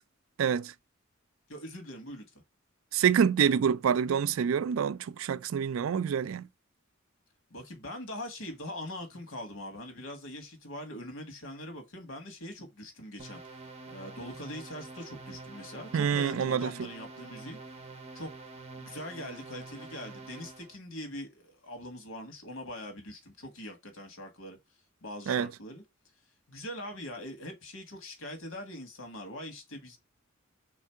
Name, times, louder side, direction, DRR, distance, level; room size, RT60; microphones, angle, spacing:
voice 1, 0.4-0.7 2.9-6.5 15.9-16.9 25.3-25.5, right 7 dB, 80° right, 0.4 m, -27 dB
voice 2, 1.5-2.2 7.5-13.4 13.9-17.6 18.1-18.3 18.8-24.6 25.0-25.8 26.5-30.0, left 1 dB, 85° left, 1.6 m, -42 dB
sound 1, 13.2-20.8, right 3 dB, 30° right, 1.0 m, -46 dB
3.7 x 3.2 x 4.5 m
head